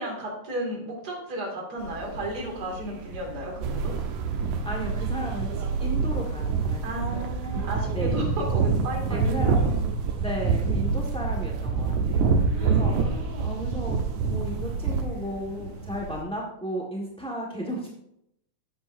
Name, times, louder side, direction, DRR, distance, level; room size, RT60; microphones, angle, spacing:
voice 1, 0.0-4.0 6.8-9.8 12.5-13.6, right 1 dB, 35° right, -1 dB, 2.7 m, -34 dB
sound 1, 1.8-16.2, right 1 dB, 60° right, 2.1 m, -41 dB
sound 2, 3.6-15.1, right 5 dB, 90° right, 2.4 m, -26 dB
voice 2, 4.6-7.2 7.5-7.6 7.9-8.3 9.1-9.7 10.2-17.9, equal, 10° left, -2 dB, 0.3 m, -35 dB
13.0 x 8.6 x 2.7 m, 0.77 s
omnidirectional pair, 3.4 m